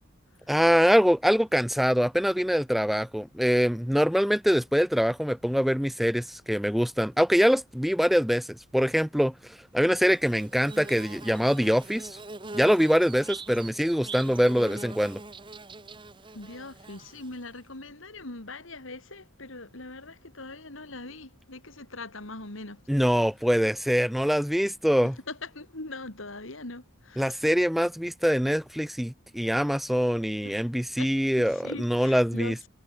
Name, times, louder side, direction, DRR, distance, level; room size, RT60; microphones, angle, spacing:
voice 1, 0.5-12.2 12.5-15.2 22.9-25.1 27.2-32.6, equal, ahead, 0.4 m, -24 dB
Bird / Buzz, 9.9-17.6, right 3 dB, 25° right, 1.3 m, -43 dB
voice 2, 16.3-22.8 25.3-27.5 30.4-30.6 31.0-31.1 31.4-32.7, left 2 dB, 75° left, 3.3 m, -41 dB
head